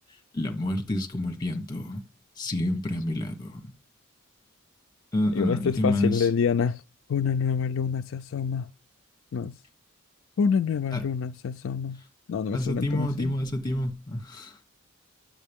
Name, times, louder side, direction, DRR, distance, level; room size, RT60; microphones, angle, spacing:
voice 1, 0.3-2.0 2.4-3.6 5.1-6.3 10.9-11.0 12.5-14.6, left 1 dB, 20° left, 1.3 m, -28 dB
voice 2, 5.3-6.8 7.1-8.7 9.3-9.5 10.4-12.0 12.3-13.3, left 6 dB, 65° left, 0.4 m, -27 dB
9.5 x 7.4 x 3.6 m
head